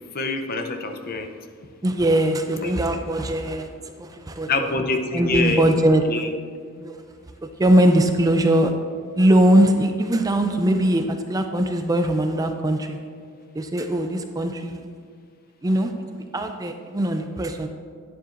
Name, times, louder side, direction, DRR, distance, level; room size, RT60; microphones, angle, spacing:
voice 1, 0.1-1.3 2.6-2.7 4.5-5.7 6.1-6.3, left 3 dB, 45° left, 6 dB, 0.6 m, -25 dB
voice 2, 1.8-3.7 4.0-4.7 5.1-6.0 6.8-7.0 7.6-8.7 9.2-13.0 13.5-14.9 15.6-17.7, right 1 dB, 15° right, 6 dB, 0.4 m, -21 dB
10.0 x 9.5 x 2.5 m, 2.1 s
head